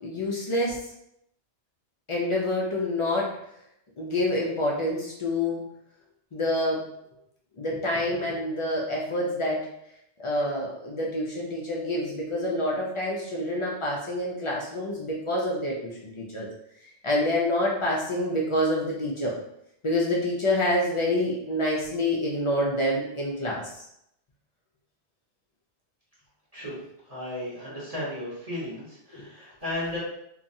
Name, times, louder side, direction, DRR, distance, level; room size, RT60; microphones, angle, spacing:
voice 1, 0.0-0.8 2.1-3.3 4.0-5.6 6.3-6.9 7.6-9.7 10.2-16.5 17.0-19.4 19.8-23.9 29.1-29.2, left 1 dB, 50° left, -4 dB, 0.3 m, -27 dB
voice 2, 27.1-30.0, left 1 dB, 35° right, -9 dB, 0.9 m, -34 dB
2.8 x 2.3 x 2.6 m, 0.77 s
omnidirectional pair, 1.2 m